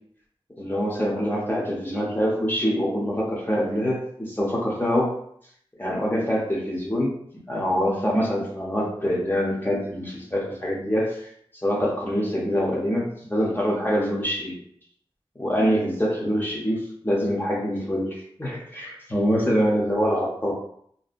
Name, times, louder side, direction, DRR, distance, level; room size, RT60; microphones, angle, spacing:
voice 1, 0.6-5.2 5.8-14.6 15.4-20.5, equal, 20° left, -4 dB, 0.7 m, -25 dB
2.7 x 2.6 x 2.4 m, 0.66 s
wide cardioid pair, 80°, 10 cm